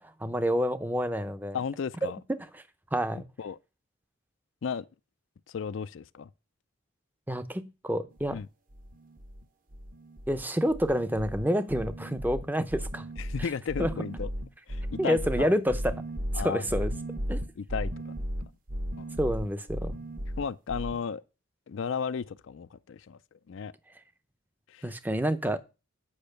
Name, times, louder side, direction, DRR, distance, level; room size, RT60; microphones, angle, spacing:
voice 1, 0.0-1.6 2.0-2.5 2.9-3.2 7.3-8.4 10.3-13.1 13.8-13.9 15.0-16.0 16.3-16.9 17.3-17.4 19.2-20.0 24.8-25.6, equal, 10° right, 0.6 m, -28 dB
voice 2, 1.5-2.2 3.4-3.6 4.6-4.8 5.5-6.3 8.3-8.5 13.2-14.3 14.7-15.5 16.3-16.8 17.6-18.1 19.0-19.1 20.4-21.2 21.7-23.2 23.5-23.7 24.7-24.9, left 6 dB, 65° left, 0.4 m, -34 dB
sound 1, 8.2-8.4 8.7-9.4 9.7-10.4 10.7-21.0, equal, 40° right, 1.0 m, -35 dB
8.8 x 5.4 x 6.5 m
head